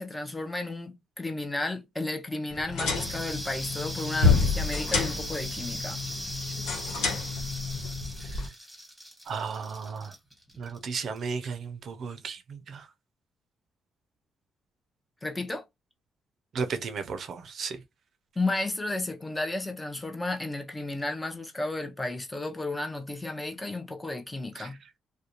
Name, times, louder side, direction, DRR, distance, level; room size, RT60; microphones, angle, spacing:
voice 1, 0.0-6.0 15.2-15.6 18.4-24.8, left 2 dB, 15° left, 0.6 m, -33 dB
Water Source Button, 2.5-8.5, left 4 dB, 90° left, 0.9 m, -29 dB
sound 1, 2.9-11.2, equal, 5° right, 1.3 m, -39 dB
voice 2, 9.3-10.1 10.6-12.9 16.5-17.8 24.6-24.7, right 5 dB, 60° right, 0.5 m, -34 dB
2.4 x 2.2 x 2.8 m
cardioid pair, 90°, 0 cm